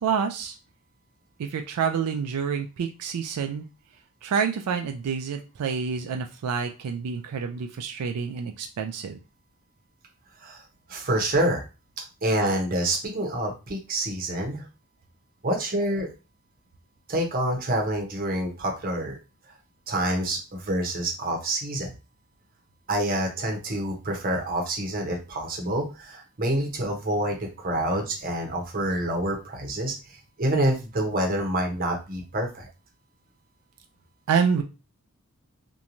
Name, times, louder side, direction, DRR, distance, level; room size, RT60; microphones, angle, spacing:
voice 1, 0.0-0.6 1.4-3.7 4.2-9.2 34.3-34.6, right 6 dB, 85° right, 5 dB, 0.4 m, -28 dB
voice 2, 10.9-11.6 12.2-14.6 15.4-16.1 17.1-19.2 19.9-21.9 22.9-32.7, right 1 dB, 40° right, 1 dB, 0.7 m, -27 dB
2.9 x 2.2 x 2.5 m, 0.29 s
head